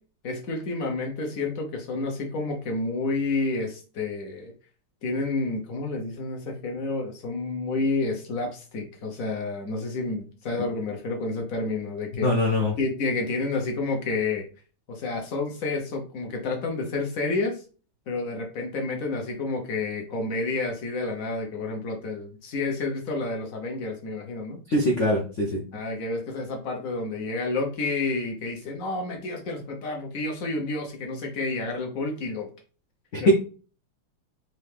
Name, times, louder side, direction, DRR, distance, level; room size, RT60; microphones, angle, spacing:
voice 1, 0.2-4.5 5.0-12.3 12.8-14.4 14.9-17.6 18.1-24.6 25.7-32.5 33.2-33.3, left 3 dB, 55° left, 2 dB, 0.9 m, -30 dB
voice 2, 12.1-12.7 24.7-25.6 33.1-33.3, equal, 75° left, -1 dB, 0.6 m, -22 dB
4.4 x 2.7 x 3.3 m, 0.37 s
omnidirectional pair, 2.4 m